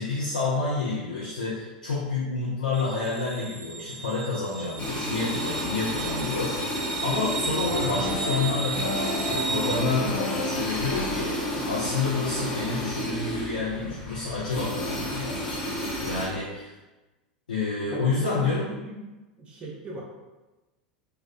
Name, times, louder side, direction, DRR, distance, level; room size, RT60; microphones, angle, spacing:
voice 1, 0.0-11.4 11.7-16.7 17.5-18.7, left 3 dB, 80° left, -7 dB, 0.5 m, -29 dB
sound 1, 2.7-9.8, right 4 dB, 80° right, 0.4 m, -35 dB
sound 2, 4.8-16.3, left 1 dB, 30° left, 0.7 m, -31 dB
sound 3, 7.6-13.1, left 1 dB, 55° left, 1.1 m, -34 dB
voice 2, 17.9-18.5 18.8-19.0 19.4-20.0, right 1 dB, 25° right, -3 dB, 0.5 m, -38 dB
2.2 x 2.1 x 2.5 m, 1.1 s
figure-of-eight pair, 85°, 4 cm